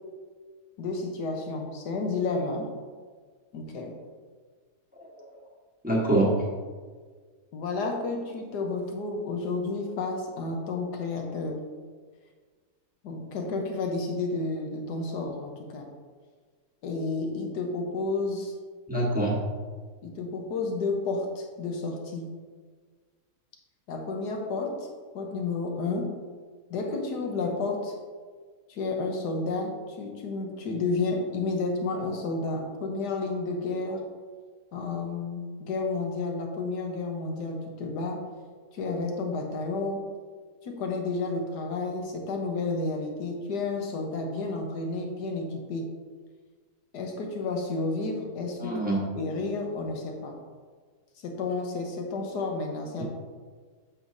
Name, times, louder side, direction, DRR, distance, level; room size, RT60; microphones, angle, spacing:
voice 1, 0.8-2.7 3.5-3.9 7.5-11.6 13.0-15.9 16.8-18.5 20.0-22.3 23.9-24.9 25.1-26.2 26.7-28.0 28.7-34.1 34.7-38.2 38.7-40.1 40.6-45.9 46.9-48.8 49.2-50.4 51.2-53.0, left 3 dB, 85° left, 2 dB, 1.6 m, -31 dB
voice 2, 5.8-6.4 18.9-19.4 48.6-49.0 53.0-53.1, right 1 dB, 5° right, -5 dB, 1.2 m, -25 dB
8.6 x 6.4 x 2.7 m, 1.5 s
omnidirectional pair, 1.7 m